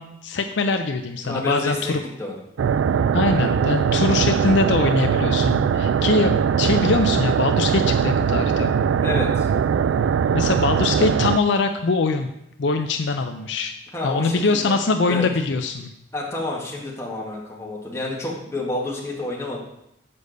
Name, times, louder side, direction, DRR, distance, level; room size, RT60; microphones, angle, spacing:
voice 1, 0.0-2.0 3.1-8.8 10.3-12.3 12.6-13.7 14.0-15.9, left 3 dB, 70° left, 6 dB, 0.5 m, -22 dB
voice 2, 1.2-1.9 2.2-2.3 9.0-9.5 13.9-14.8 15.1-15.3 16.1-19.6, left 2 dB, 15° left, -4 dB, 2.1 m, -29 dB
sound 1, 2.6-11.4, right 7 dB, 80° right, 0.3 m, -21 dB
6.9 x 5.2 x 6.6 m, 0.80 s
head